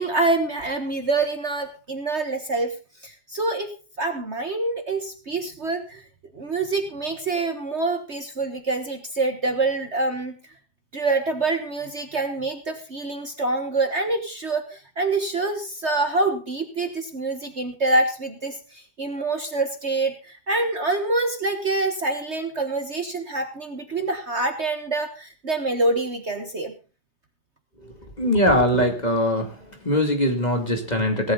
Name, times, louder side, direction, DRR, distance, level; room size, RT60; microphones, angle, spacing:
voice 1, 0.0-2.7 3.0-3.7 4.0-6.0 6.3-10.3 10.9-26.7, right 2 dB, 40° right, 6 dB, 1.6 m, -26 dB
voice 2, 28.2-29.5 29.8-31.3, left 1 dB, 20° left, 4 dB, 2.5 m, -21 dB
17.5 x 12.0 x 3.9 m, 0.35 s
omnidirectional pair, 1.9 m